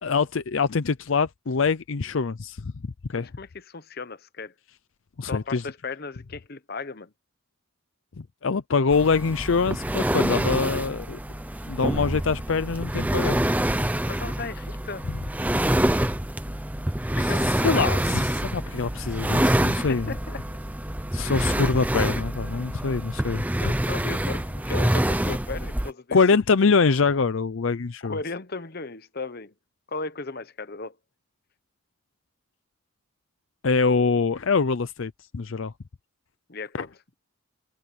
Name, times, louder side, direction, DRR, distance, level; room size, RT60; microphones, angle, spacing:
voice 1, 0.0-2.7 3.1-3.3 5.2-5.6 8.4-11.2 11.7-13.4 17.2-20.1 21.1-23.4 26.1-28.2 33.6-35.7 36.7-36.8, left 4 dB, 65° left, 0.6 m, -24 dB
voice 2, 3.1-4.5 5.3-7.1 14.1-15.1 17.1-17.8 19.6-20.4 23.4-26.4 28.0-29.5 29.9-31.0 36.5-37.0, left 3 dB, 45° left, 0.9 m, -36 dB
sound 1, 8.9-25.9, right 1 dB, 5° right, 0.7 m, -26 dB
head